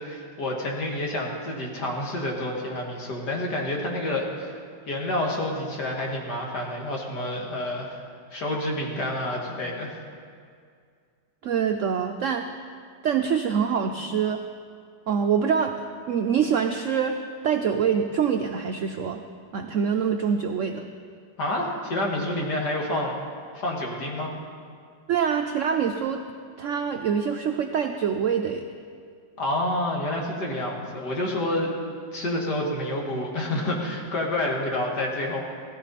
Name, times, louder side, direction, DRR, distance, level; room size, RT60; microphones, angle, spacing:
voice 1, 0.0-4.6 4.9-8.0 8.3-9.9 21.4-23.1 23.5-24.3 29.4-31.7 32.1-35.4, left 1 dB, 60° left, -1 dB, 2.6 m, -28 dB
voice 2, 11.4-12.5 13.0-14.4 15.1-17.2 17.4-19.2 19.5-20.9 25.1-26.2 26.6-28.6, right 7 dB, 90° right, 5 dB, 0.6 m, -25 dB
16.0 x 14.5 x 4.2 m, 2.2 s
omnidirectional pair, 2.0 m